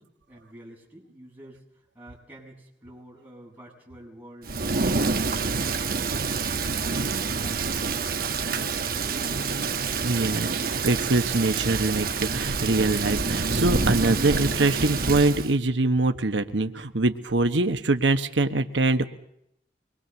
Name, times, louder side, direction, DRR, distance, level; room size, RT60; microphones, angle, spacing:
voice 1, 0.0-8.5 8.9-9.4, right 1 dB, 10° right, -4 dB, 7.1 m, -48 dB
Thunder / Rain, 4.4-15.5, right 4 dB, 55° right, 1.2 m, -27 dB
voice 2, 10.0-19.0, right 2 dB, 90° right, 8 dB, 1.1 m, -24 dB
24.5 x 22.5 x 7.0 m, 0.76 s
head